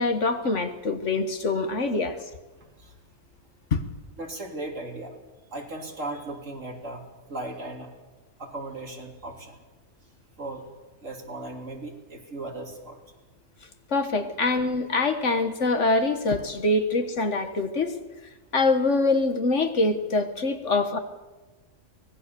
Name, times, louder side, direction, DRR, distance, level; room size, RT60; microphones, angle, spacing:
voice 1, 0.0-2.2 3.7-3.8 13.9-17.9 18.5-21.0, left 3 dB, 60° left, 8 dB, 1.8 m, -24 dB
voice 2, 4.2-5.1 5.5-7.0 7.3-7.9 8.4-9.6 10.4-10.6 11.0-13.0, right 2 dB, 65° right, 1 dB, 3.6 m, -37 dB
24.0 x 19.0 x 7.0 m, 1.2 s
omnidirectional pair, 1.4 m